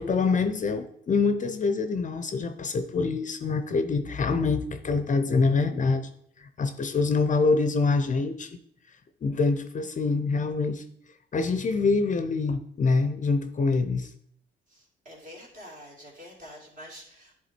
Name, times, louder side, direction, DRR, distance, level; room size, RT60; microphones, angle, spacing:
voice 1, 0.0-6.1 6.4-8.5 9.2-10.8 11.3-14.1, left 4 dB, 40° left, 9 dB, 0.6 m, -25 dB
voice 2, 14.7-17.3, equal, 40° right, -2 dB, 2.8 m, -46 dB
10.5 x 3.6 x 4.4 m, 0.70 s
cardioid pair, 90°, 20 cm